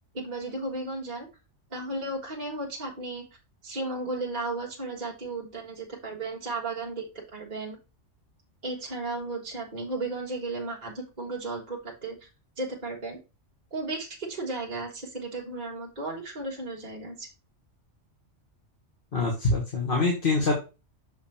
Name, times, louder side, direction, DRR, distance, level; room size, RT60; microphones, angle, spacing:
voice 1, 0.1-1.3 1.7-3.2 3.6-7.0 7.3-7.8 8.6-12.3 12.6-13.2 13.7-17.3, right 2 dB, 40° right, -3 dB, 1.5 m, -34 dB
voice 2, 19.1-20.5, left 3 dB, 50° left, -1 dB, 1.7 m, -24 dB
6.5 x 5.0 x 3.5 m, 0.29 s
omnidirectional pair, 1.2 m